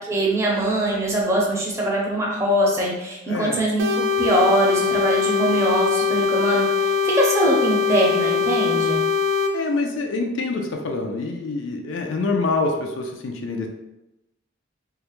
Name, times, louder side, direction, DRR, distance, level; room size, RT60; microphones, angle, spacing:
voice 1, 0.1-9.0, right 1 dB, 15° right, -4 dB, 0.5 m, -22 dB
voice 2, 3.3-3.6 9.5-13.7, left 3 dB, 75° left, 3 dB, 0.4 m, -26 dB
sound 1, 3.8-9.5, left 6 dB, 65° right, 0.3 m, -21 dB
2.3 x 2.1 x 3.0 m, 0.95 s
head